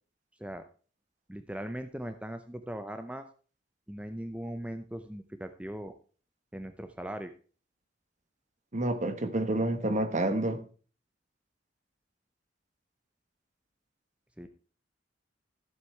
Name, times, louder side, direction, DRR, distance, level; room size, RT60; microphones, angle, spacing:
voice 1, 1.3-3.3 3.9-5.9 6.5-7.3 14.4-14.5, right 1 dB, 5° right, 8 dB, 0.6 m, -39 dB
voice 2, 8.7-10.6, right 1 dB, 40° right, 10 dB, 1.2 m, -28 dB
14.0 x 8.1 x 3.2 m, 0.38 s
head